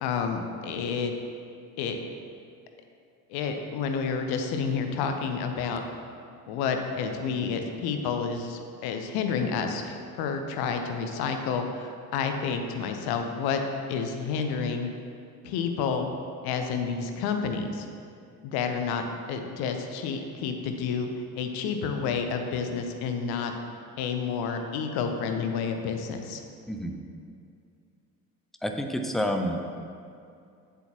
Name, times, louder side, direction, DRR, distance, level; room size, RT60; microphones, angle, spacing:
voice 1, 0.0-1.1 1.8-2.0 3.3-5.8 6.5-13.6 13.9-14.9 15.4-16.1 16.4-17.9 18.4-21.1 21.4-23.5 24.0-26.4, left 6 dB, 55° left, 5 dB, 0.9 m, -30 dB
voice 2, 26.7-27.0 28.6-29.6, equal, ahead, 4 dB, 0.5 m, -29 dB
8.2 x 7.8 x 2.9 m, 2.4 s
figure-of-eight pair, 55°, 47 cm